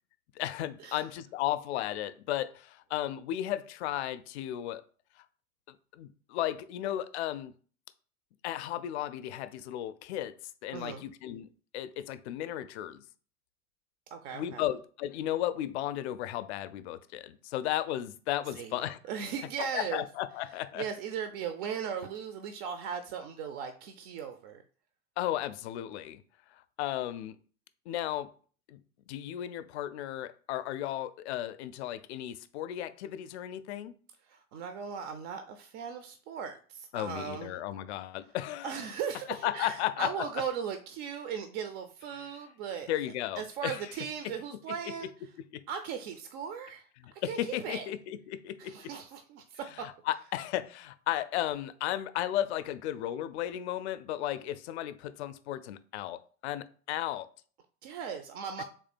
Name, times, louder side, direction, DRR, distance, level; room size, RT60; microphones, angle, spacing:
voice 1, 0.4-4.8 5.7-7.5 8.4-10.3 10.6-11.5 11.7-13.0 14.3-19.0 19.7-20.9 25.2-26.2 26.8-27.4 27.9-28.3 28.7-28.8 29.1-34.0 36.9-38.8 39.3-40.3 42.1-42.3 42.9-43.8 44.2-44.6 45.5-45.6 47.0-48.9 49.8-57.3 58.6-58.7, left 13 dB, 50° left, 0.5 m, -35 dB
voice 2, 10.7-11.1 14.1-14.6 18.6-18.8 19.1-20.0 20.7-24.6 34.3-37.6 38.6-42.9 43.4-45.1 45.7-46.9 47.1-47.9 48.6-49.9 57.8-58.6, right 7 dB, 40° right, 0.5 m, -38 dB
3.6 x 2.7 x 4.1 m
figure-of-eight pair, 90°, 44 cm